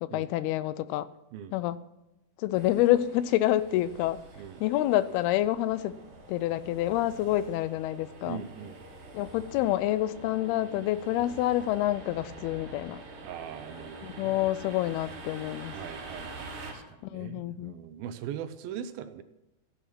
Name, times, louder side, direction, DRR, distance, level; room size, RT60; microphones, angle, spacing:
voice 1, 0.0-1.1 1.5-1.8 2.4-4.2 4.6-6.0 6.3-8.4 9.1-13.0 14.0-15.7 17.0-17.8, left 14 dB, 85° left, 2.6 m, -28 dB
sound 1, 2.5-16.7, right 2 dB, 60° right, 5.1 m, -46 dB
voice 2, 8.3-8.8 13.2-14.4 15.7-19.2, right 9 dB, 80° right, 2.5 m, -41 dB
15.0 x 10.5 x 6.0 m
omnidirectional pair, 4.5 m